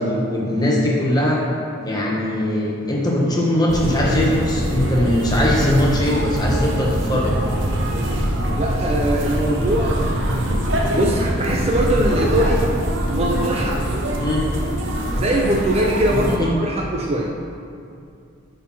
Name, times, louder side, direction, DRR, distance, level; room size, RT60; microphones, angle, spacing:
voice 1, 0.0-1.4 1.8-7.4 14.2-14.4 16.3-16.5, left 1 dB, 20° left, -4 dB, 1.2 m, -20 dB
sound 1, 3.7-16.4, equal, 60° right, 0.9 m, -23 dB
voice 2, 8.6-10.5 10.9-12.6 13.1-14.0 15.1-17.3, right 1 dB, 30° right, -1 dB, 0.5 m, -22 dB
8.0 x 4.2 x 5.9 m, 2.5 s
head